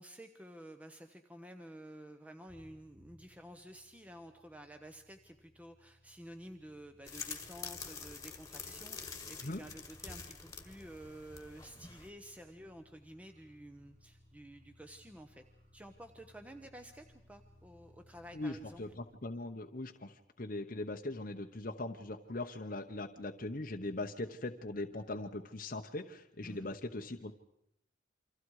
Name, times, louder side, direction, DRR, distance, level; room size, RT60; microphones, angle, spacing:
voice 1, 0.0-15.4 15.7-18.8 26.4-26.7, right 1 dB, 5° right, 6 dB, 1.0 m, -52 dB
sound 1, 2.5-19.0, left 1 dB, 45° right, 7.9 m, -64 dB
sound 2, 7.1-12.1, left 5 dB, 15° left, 1.7 m, -46 dB
voice 2, 18.3-20.1 20.4-27.3, left 2 dB, 45° left, 4 dB, 1.0 m, -40 dB
29.0 x 25.0 x 4.9 m, 0.76 s
head